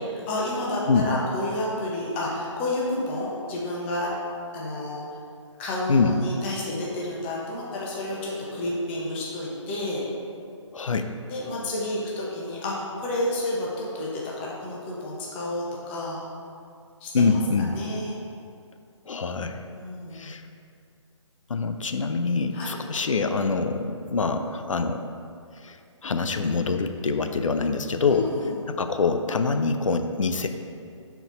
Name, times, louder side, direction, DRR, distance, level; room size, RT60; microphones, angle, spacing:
voice 1, 0.0-4.1 4.5-5.1 5.6-10.0 11.3-16.2 17.0-17.2 17.6-18.1 19.7-20.3 22.5-22.8 28.1-28.5, left 1 dB, 20° left, -5 dB, 1.0 m, -30 dB
voice 2, 10.7-11.1 17.1-17.8 19.1-19.6 20.1-20.4 21.5-25.0 25.6-25.8 26.0-28.3 28.7-30.5, left 4 dB, 80° left, 7 dB, 0.5 m, -25 dB
5.8 x 4.6 x 4.0 m, 2.4 s
figure-of-eight pair, 150°, 16 cm